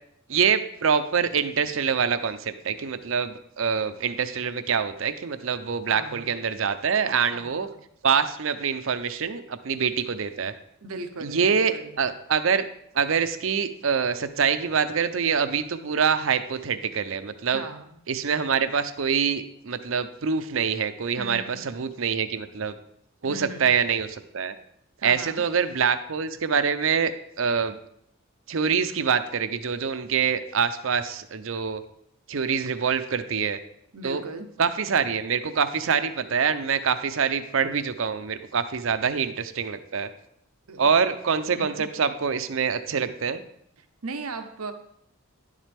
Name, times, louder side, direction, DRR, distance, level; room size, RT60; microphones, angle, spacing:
voice 1, 0.3-7.7 8.0-10.5 11.2-12.6 12.9-17.6 18.1-22.8 23.2-24.5 25.0-27.1 27.4-27.8 28.5-31.8 32.3-33.6 34.0-34.2 34.6-40.1 40.8-43.4, right 6 dB, 65° right, 11 dB, 0.6 m, -25 dB
voice 2, 5.9-6.4 7.3-7.8 10.8-12.0 17.5-18.0 21.2-21.8 23.2-23.7 25.0-25.4 33.9-34.5 40.7-40.9 41.5-41.9 44.0-44.7, right 3 dB, 90° right, 8 dB, 0.8 m, -38 dB
10.5 x 7.3 x 3.4 m, 0.72 s
head